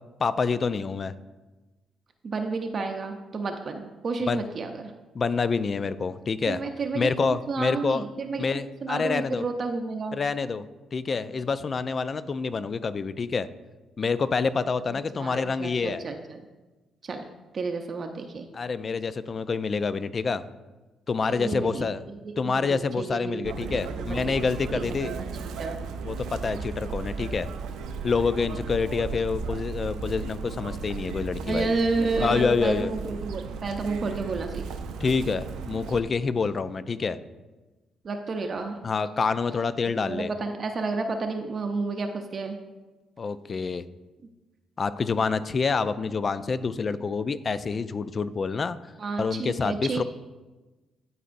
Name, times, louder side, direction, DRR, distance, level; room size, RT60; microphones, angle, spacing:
voice 1, 0.2-1.1 4.3-4.4 5.1-6.6 7.0-8.0 8.4-9.4 10.1-10.6 10.9-13.5 14.0-16.0 18.5-20.4 21.1-22.0 22.4-25.1 26.0-27.5 28.0-31.7 32.2-32.9 35.0-37.2 38.8-40.3 43.2-43.8 44.8-48.8 49.2-50.0, left 4 dB, 40° left, 14 dB, 0.3 m, -27 dB
voice 2, 2.2-4.9 6.5-10.2 14.9-16.4 17.0-17.2 17.5-18.5 21.3-24.2 24.7-25.1 25.4-25.8 31.5-34.6 38.0-38.8 40.0-42.6 49.0-50.0, right 3 dB, 45° right, 4 dB, 0.6 m, -31 dB
Chirp tweet, 23.4-36.0, right 5 dB, 85° right, 0.5 m, -35 dB
12.0 x 4.1 x 2.6 m, 1.2 s
cardioid pair, 90°, 0 cm